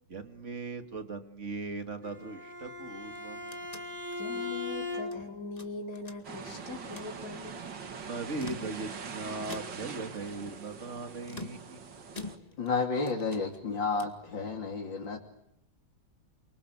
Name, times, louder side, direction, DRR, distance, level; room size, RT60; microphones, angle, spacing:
voice 1, 0.1-3.7 8.0-11.8, right 3 dB, 40° right, 8 dB, 2.6 m, -39 dB
Bowed string instrument, 2.0-5.4, left 3 dB, 5° right, 5.8 m, -38 dB
sound 1, 3.0-5.2 5.6-6.5 6.8-7.2 8.2-9.1 9.5-10.0 11.2-12.8 13.1-14.3, left 3 dB, 20° left, 2.1 m, -46 dB
voice 2, 4.2-7.7, left 2 dB, 45° left, 1 dB, 4.8 m, -41 dB
sound 2, 6.2-12.4, right 5 dB, 70° right, 2.6 m, -43 dB
voice 3, 12.6-15.2, left 4 dB, 80° left, 1 dB, 3.7 m, -31 dB
29.0 x 24.5 x 8.2 m, 0.82 s
omnidirectional pair, 2.0 m